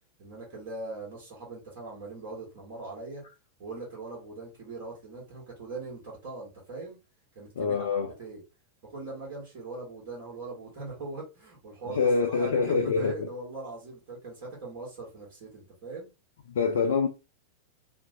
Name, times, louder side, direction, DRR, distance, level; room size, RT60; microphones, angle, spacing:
voice 1, 0.2-3.2 3.6-7.0 7.3-7.8 8.2-8.4 8.9-12.0 12.3-16.1, right 3 dB, 50° right, 1.2 m, -40 dB
voice 2, 7.6-8.1 11.8-13.3 16.5-17.1, left 5 dB, 60° left, 0.4 m, -25 dB
2.5 x 2.1 x 2.7 m
figure-of-eight pair, 90°, 0 cm